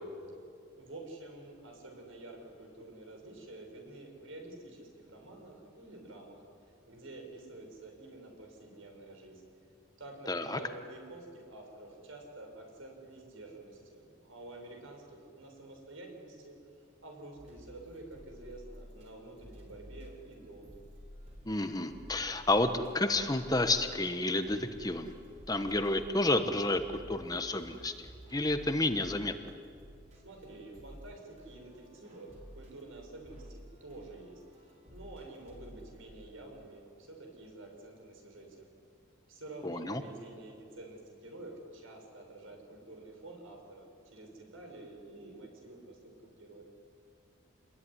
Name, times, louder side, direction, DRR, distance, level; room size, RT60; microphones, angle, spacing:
voice 1, 0.8-6.4 6.9-9.4 10.0-16.6 17.0-20.9 30.1-38.7 39.3-46.6, right 2 dB, 80° right, 2 dB, 6.4 m, -49 dB
voice 2, 10.3-10.6 21.5-25.1 25.5-27.9 28.3-29.3 39.6-40.0, left 2 dB, 20° left, 8 dB, 1.1 m, -30 dB
sound 1, 17.4-19.1 19.4-36.1, equal, 35° right, 5.0 m, -52 dB
27.5 x 21.0 x 9.9 m, 2.4 s
head